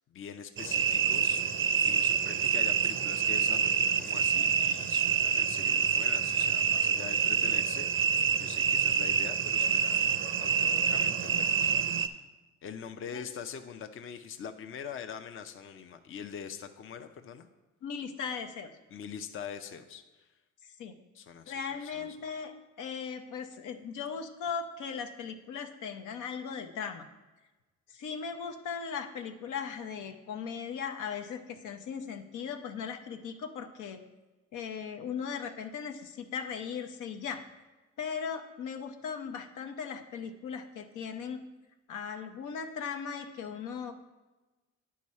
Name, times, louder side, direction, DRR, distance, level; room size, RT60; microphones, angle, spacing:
voice 1, 0.1-1.4 1.8-10.1 10.4-11.7 12.0-12.2 12.6-17.5 18.9-20.3 21.1-21.5 21.8-22.1, left 7 dB, 45° left, 7 dB, 0.6 m, -43 dB
sound 1, 0.6-12.1, right 7 dB, 45° right, 0.5 m, -27 dB
voice 2, 17.8-18.7 20.6-20.9 21.5-27.1 27.9-34.0 34.5-37.4 38.0-41.4 41.9-43.9, left 6 dB, 80° left, 6 dB, 0.7 m, -38 dB
9.5 x 4.7 x 4.2 m, 1.2 s
cardioid pair, 90°, 30 cm